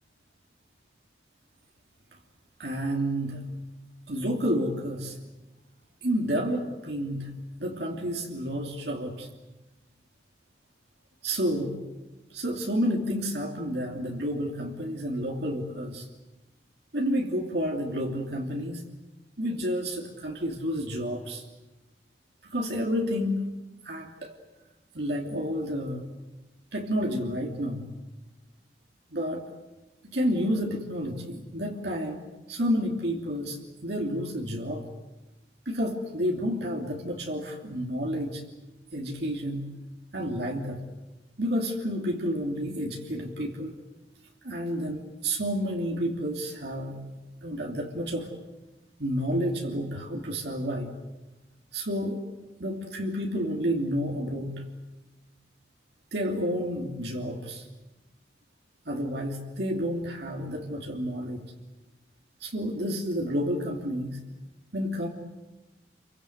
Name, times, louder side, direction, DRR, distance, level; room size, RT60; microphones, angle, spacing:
voice 1, 2.6-3.4 4.1-5.2 6.0-7.3 7.6-9.3 11.2-11.8 12.3-16.1 16.9-18.9 19.4-21.4 22.4-23.6 23.8-24.3 24.9-26.0 26.7-27.9 29.1-29.5 30.0-34.9 35.6-38.4 38.9-39.7 40.1-40.8 41.4-43.8 44.4-47.0 47.4-48.3 49.0-50.9 51.7-52.3 52.6-54.6 56.1-57.7 58.9-61.4 62.4-64.2 64.7-65.1, equal, 65° right, 0 dB, 3.0 m, -30 dB
29.5 x 24.0 x 8.0 m, 1.1 s
head